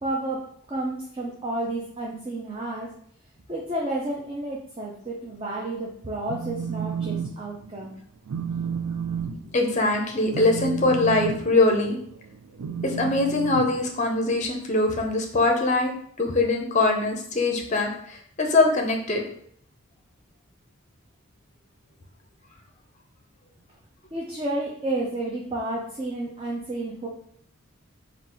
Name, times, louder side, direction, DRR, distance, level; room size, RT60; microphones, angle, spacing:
voice 1, 0.0-2.9 3.5-8.0 24.1-27.1, right 2 dB, 25° right, -3 dB, 0.5 m, -31 dB
Telephone, 6.1-7.3 7.6-7.9 8.3-14.4, right 7 dB, 85° right, 0.4 m, -32 dB
voice 2, 9.5-12.0 12.8-15.9 16.2-19.2, left 2 dB, 35° left, 3 dB, 0.6 m, -22 dB
3.8 x 2.4 x 4.4 m, 0.65 s
head